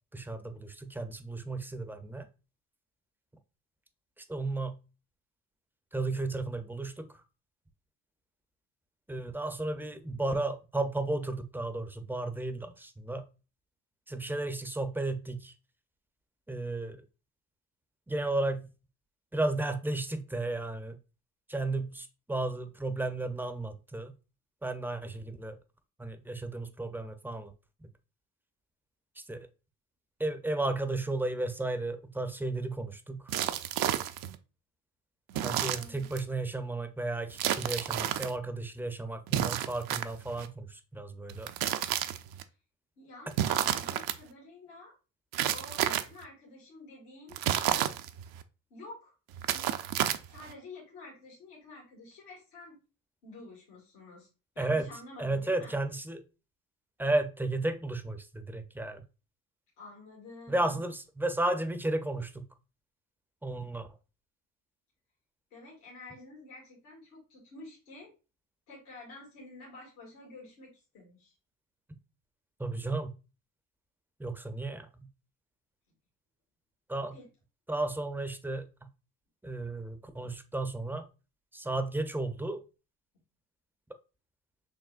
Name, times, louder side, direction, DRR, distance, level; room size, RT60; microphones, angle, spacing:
voice 1, 0.1-2.3 4.2-4.8 5.9-7.2 9.1-13.2 14.1-15.5 16.5-17.0 18.1-18.7 19.3-21.0 21.5-24.1 24.6-25.6 26.0-27.5 27.8-27.9 29.2-29.5 30.2-33.4 35.4-41.5 54.6-54.9 55.2-56.2 57.0-59.0 60.5-62.5 63.4-63.9 72.6-73.1 74.2-75.1 76.9-77.2 77.7-78.7 79.4-81.1 81.5-82.6, right 2 dB, 5° right, 8 dB, 0.5 m, -33 dB
sound 1, 33.3-34.4 35.3-36.2 37.3-38.3 39.3-40.5 41.3-42.4 43.3-44.2 45.3-46.2 47.3-48.4 49.3-50.5, right 11 dB, 55° right, 0.5 m, -31 dB
voice 2, 35.3-36.1 43.0-44.9 45.5-47.9 48.7-49.7 50.2-52.8 53.2-54.3 54.6-55.8 59.8-60.8 65.5-68.1 68.7-71.3 77.1-77.3, left 2 dB, 85° left, -3 dB, 1.8 m, -50 dB
6.1 x 2.1 x 2.4 m, 0.31 s
supercardioid pair, 65°, 43 cm